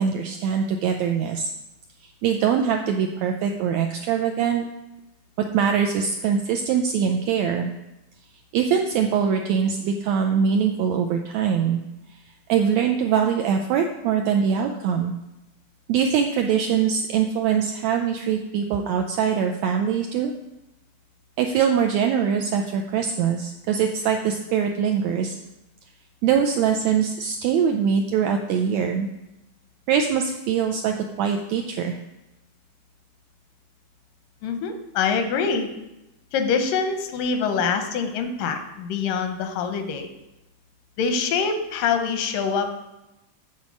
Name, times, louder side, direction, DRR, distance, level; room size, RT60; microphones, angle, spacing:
voice 1, 0.0-1.5 2.0-4.7 5.5-7.7 8.5-11.8 12.5-15.1 15.9-20.3 21.4-25.4 26.2-29.1 29.9-32.0, right 7 dB, 80° right, 4 dB, 1.6 m, -23 dB
voice 2, 34.4-35.7 36.3-40.1 41.0-42.7, left 5 dB, 85° left, 6 dB, 2.5 m, -25 dB
8.9 x 4.2 x 6.2 m, 0.94 s
omnidirectional pair, 3.7 m